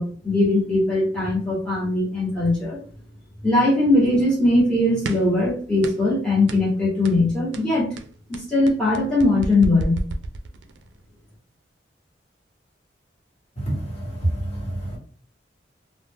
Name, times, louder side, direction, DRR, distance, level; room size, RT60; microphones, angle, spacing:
voice 1, 0.0-2.8 3.4-7.9 8.3-10.0, left 2 dB, 5° left, 1.0 m, -20 dB
sound 1, 5.0-5.4 5.8-6.1 6.5-6.7 7.0-7.3 7.5-10.9, right 2 dB, 80° right, 0.3 m, -31 dB
voice 2, 13.6-15.0, right 1 dB, 35° left, 1.3 m, -27 dB
2.4 x 2.0 x 3.4 m
head